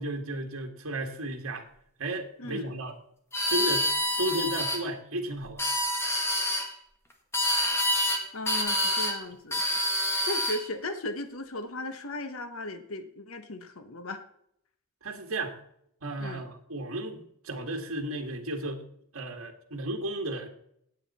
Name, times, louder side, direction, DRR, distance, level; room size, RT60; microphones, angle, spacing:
voice 1, 0.0-1.7 2.0-2.9 3.5-3.9 4.2-5.7 15.0-15.6 16.0-18.8 19.1-20.5, right 1 dB, 75° right, 2 dB, 1.7 m, -33 dB
voice 2, 2.4-2.7 8.3-14.2 16.2-16.5, left 2 dB, 85° left, 9 dB, 1.2 m, -37 dB
sound 1, 3.3-4.8 5.4-6.7 7.3-8.2 8.5-9.2 9.5-10.6, left 1 dB, 10° left, 1.8 m, -27 dB
17.5 x 8.2 x 4.2 m, 0.72 s
head